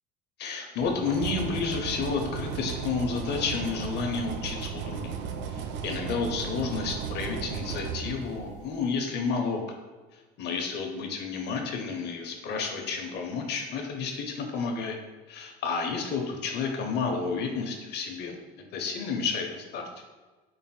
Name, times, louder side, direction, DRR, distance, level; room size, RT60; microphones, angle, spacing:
voice 1, 0.4-5.2 5.5-9.6 10.4-15.0 15.3-19.8, left 5 dB, 55° left, 4 dB, 0.7 m, -31 dB
sound 1, 0.8-8.8, right 6 dB, 60° right, 0.4 m, -35 dB
4.0 x 3.9 x 2.2 m, 1.3 s
supercardioid pair, 95°, 21 cm